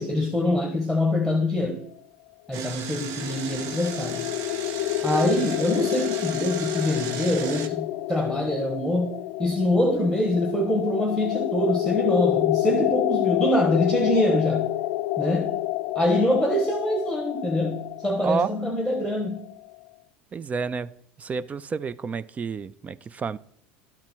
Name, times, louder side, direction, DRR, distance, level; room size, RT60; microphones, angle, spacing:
voice 1, 0.0-1.8 2.5-4.3 5.0-14.7 15.2-15.6 15.9-19.5, left 1 dB, 5° right, 1.2 m, -24 dB
Engine, 2.5-7.7, right 7 dB, 60° right, 0.9 m, -36 dB
sound 1, 2.7-19.5, left 15 dB, 65° left, 0.4 m, -28 dB
voice 2, 18.2-18.5 20.3-20.9 21.2-23.4, right 5 dB, 25° right, 0.4 m, -29 dB
11.5 x 4.4 x 6.0 m
hypercardioid pair, 95°, 6 cm